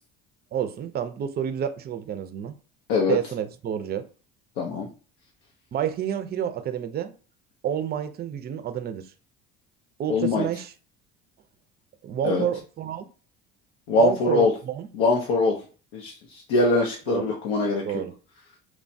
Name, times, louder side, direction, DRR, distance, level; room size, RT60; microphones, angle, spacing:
voice 1, 0.5-2.6 3.1-4.1 5.7-7.1 7.6-9.1 10.0-10.7 12.0-13.1 14.0-14.9 17.1-17.2 17.8-18.1, right 9 dB, 35° right, 0.4 m, -29 dB
voice 2, 4.6-4.9 10.1-10.5 12.2-12.4 13.9-14.5 14.9-15.6 15.9-17.8, left 3 dB, 90° left, 0.6 m, -23 dB
3.1 x 2.1 x 2.6 m
supercardioid pair, 80°, 30 cm